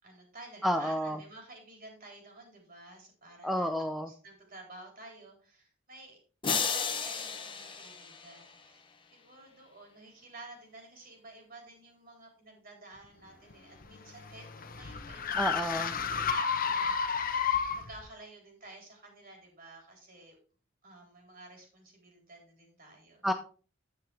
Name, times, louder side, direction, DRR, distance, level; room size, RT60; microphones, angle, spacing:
voice 1, 0.0-3.7 4.1-6.2 6.4-8.8 9.1-15.8 16.6-17.0 17.7-20.4 20.8-23.2, right 2 dB, 50° right, 1 dB, 4.0 m, -52 dB
voice 2, 0.6-1.2 3.4-4.1 15.4-15.9 23.2-23.3, equal, ahead, 6 dB, 0.5 m, -30 dB
sound 1, 6.4-8.8, left 6 dB, 25° left, 1.1 m, -34 dB
sound 2, 13.5-18.0, left 6 dB, 45° left, 0.9 m, -31 dB
9.7 x 7.8 x 3.5 m, 0.37 s
head